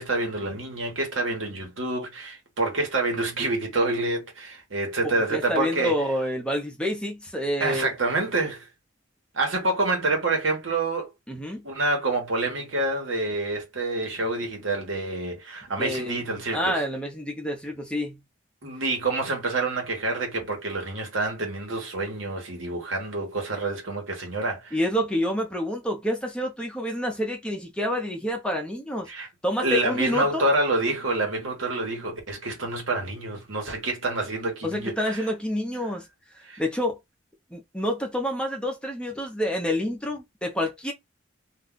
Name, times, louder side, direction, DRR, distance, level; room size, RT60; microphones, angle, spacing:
voice 1, 0.0-5.9 7.6-8.7 9.3-11.1 11.6-16.8 18.6-24.8 29.1-29.3 29.6-35.3 36.4-36.6, right 2 dB, 85° right, 1.2 m, -27 dB
voice 2, 5.0-7.9 11.3-11.6 15.8-16.2 16.5-18.2 24.7-29.1 29.4-30.5 34.6-36.1 36.6-37.0 37.5-40.9, equal, 5° left, 0.6 m, -28 dB
2.5 x 2.3 x 3.7 m
head